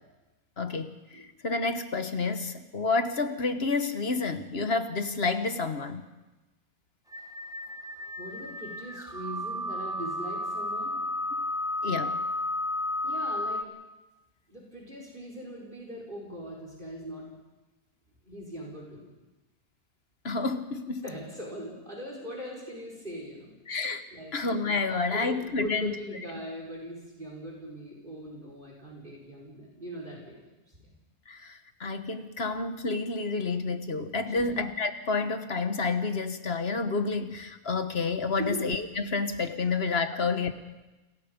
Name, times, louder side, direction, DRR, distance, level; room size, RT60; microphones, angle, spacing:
voice 1, 0.6-6.0 11.4-11.5 11.8-12.2 20.2-21.0 23.7-24.0 24.3-25.9 31.3-40.5, left 4 dB, 45° left, 9 dB, 1.4 m, -29 dB
sound 1, 7.1-13.6, left 1 dB, 5° right, 0.6 m, -33 dB
voice 2, 8.2-11.0 13.0-13.7 14.5-17.3 18.2-19.1 21.0-23.5 24.1-24.4 25.1-30.4 30.7-30.9 34.3-34.6 38.4-38.6 40.1-40.2, equal, 35° right, -2 dB, 5.0 m, -40 dB
29.0 x 21.0 x 5.3 m, 1.1 s
omnidirectional pair, 1.5 m